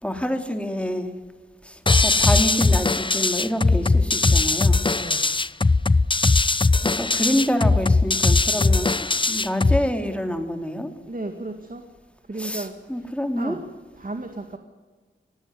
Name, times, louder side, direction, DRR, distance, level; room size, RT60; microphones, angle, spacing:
voice 1, 0.0-1.1 1.6-4.8 6.8-8.9 9.3-10.9 12.4-13.6, equal, 5° left, 6 dB, 3.0 m, -27 dB
sound 1, 1.9-9.9, left 3 dB, 25° left, 0.6 m, -19 dB
voice 2, 4.9-5.3 11.1-11.8 12.3-13.6 13.9-14.6, right 2 dB, 45° right, 6 dB, 2.0 m, -35 dB
19.5 x 15.5 x 9.8 m, 1.4 s
wide cardioid pair, 60°, 20 cm